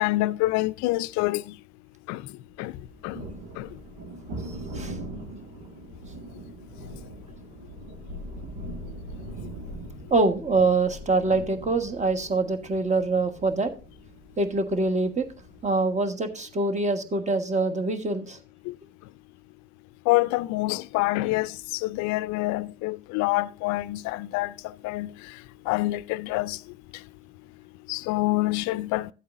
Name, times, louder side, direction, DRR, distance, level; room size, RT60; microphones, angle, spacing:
voice 1, 0.0-1.4 2.1-2.2 2.6-2.7 3.0-3.2 3.6-3.7 18.7-18.8 20.1-21.6 21.8-24.5 24.8-25.1 25.7-26.6 27.9-29.1, left 19 dB, 65° left, 0.5 m, -26 dB
Thunder, 2.6-15.8, right 1 dB, 80° right, 2.0 m, -41 dB
voice 2, 10.1-13.7 14.4-15.3 15.6-18.4, right 3 dB, 25° right, 1.4 m, -24 dB
12.5 x 8.3 x 2.6 m
hypercardioid pair, 60°, 30 cm